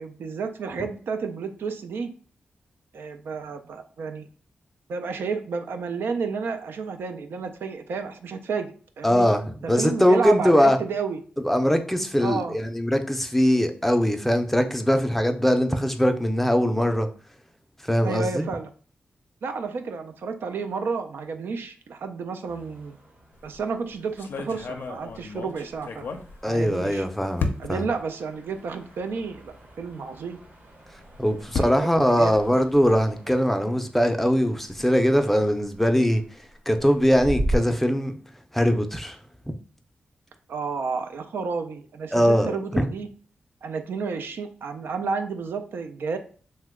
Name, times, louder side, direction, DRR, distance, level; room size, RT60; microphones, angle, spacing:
voice 1, 0.0-2.1 2.9-4.3 4.9-9.3 9.6-11.2 12.2-12.6 18.0-18.7 19.4-23.0 23.4-26.1 26.4-27.0 27.6-30.4 31.5-31.9 32.2-32.4 40.5-43.1 43.6-46.2, right 5 dB, 85° right, 0.3 m, -31 dB
voice 2, 9.0-10.8 11.4-17.1 17.9-18.5 26.4-27.8 31.2-36.2 36.7-38.2 38.5-39.2 42.1-42.9, equal, 5° left, 0.5 m, -21 dB
sound 1, 22.5-37.6, right 1 dB, 60° right, 1.1 m, -39 dB
sound 2, 23.3-23.6 24.2-26.9 27.4-27.9 28.7-28.8 29.1-29.2 30.8-33.2, left 4 dB, 80° left, 0.4 m, -33 dB
2.9 x 2.2 x 3.4 m
cardioid pair, 55°, 4 cm